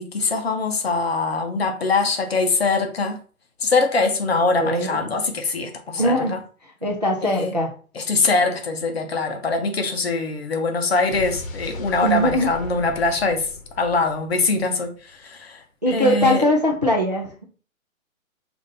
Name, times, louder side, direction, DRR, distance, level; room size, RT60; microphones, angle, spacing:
voice 1, 0.0-3.2 3.6-6.4 7.2-7.5 7.9-13.5 13.8-16.4, left 3 dB, 50° left, 0.6 m, -23 dB
voice 2, 4.6-5.0 5.9-6.4 6.8-7.7 12.0-12.5 15.8-17.4, equal, 30° right, 0.4 m, -21 dB
Explosion, 11.1-15.2, left 2 dB, 70° left, 0.9 m, -37 dB
4.9 x 2.6 x 2.6 m
hypercardioid pair, 170°, 42 cm